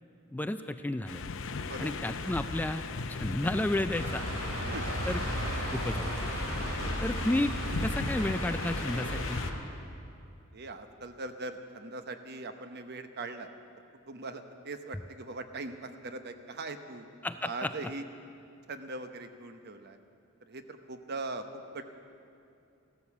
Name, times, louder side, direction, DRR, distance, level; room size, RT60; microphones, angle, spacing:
voice 1, 0.3-1.2 1.8-2.8 3.1-4.2 5.1-5.2 5.7-6.3 7.0-7.5 7.8-9.4 17.2-17.7, left 1 dB, 10° left, 9 dB, 0.3 m, -32 dB
sound 1, 1.1-9.5, left 4 dB, 65° left, 0.7 m, -37 dB
sound 2, 3.9-9.5, equal, 80° right, 3.5 m, -35 dB
voice 2, 10.5-13.5 14.1-17.1 17.4-18.0 18.7-20.0 20.4-21.4 21.7-21.8, right 3 dB, 50° right, 8 dB, 0.9 m, -40 dB
15.0 x 13.0 x 7.2 m, 2.6 s
head